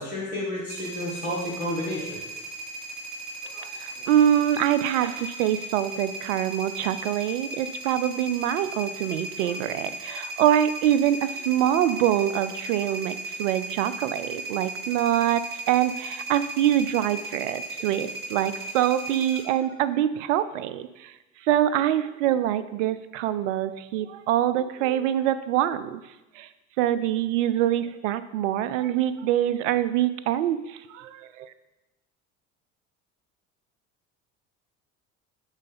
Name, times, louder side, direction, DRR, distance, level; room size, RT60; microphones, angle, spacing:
voice 1, 0.0-2.4, left 1 dB, 85° left, -4 dB, 1.8 m, -31 dB
sound 1, 0.7-19.4, right 2 dB, 25° right, 2.1 m, -36 dB
voice 2, 3.6-21.1 21.4-26.0 26.4-26.5 26.8-31.5, right 11 dB, 65° right, 14 dB, 0.5 m, -25 dB
6.3 x 4.0 x 4.0 m, 0.99 s
figure-of-eight pair, 65°, 41 cm